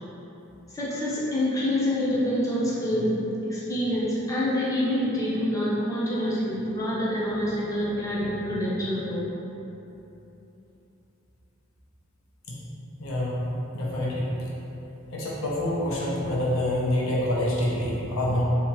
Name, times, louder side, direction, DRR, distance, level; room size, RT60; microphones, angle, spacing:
voice 1, 0.7-9.3, left 1 dB, 15° left, -8 dB, 0.6 m, -26 dB
voice 2, 13.0-13.3 13.7-14.3 15.1-18.4, left 1 dB, 75° left, -5 dB, 0.7 m, -26 dB
3.5 x 2.8 x 3.0 m, 3.0 s
head